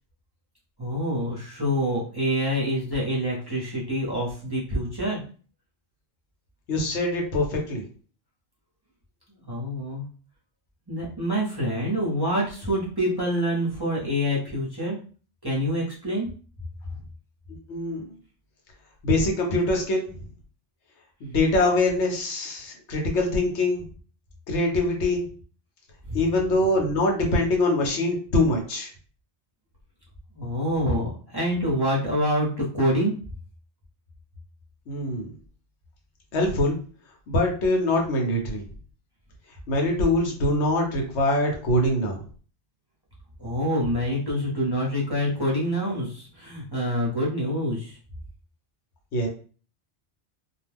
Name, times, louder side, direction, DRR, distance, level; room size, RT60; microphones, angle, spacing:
voice 1, 0.8-5.2 9.4-10.0 10.9-15.0 15.4-16.3 26.1-26.2 30.3-33.2 43.4-48.0, equal, 25° right, -6 dB, 0.8 m, -26 dB
voice 2, 6.7-7.8 17.7-18.0 19.0-20.1 21.2-23.8 24.5-25.2 26.1-28.9 34.9-35.3 36.3-36.8 37.3-38.6 39.7-42.2 49.1-49.3, left 1 dB, 80° left, 1 dB, 1.1 m, -23 dB
2.4 x 2.2 x 3.3 m, 0.39 s
omnidirectional pair, 1.1 m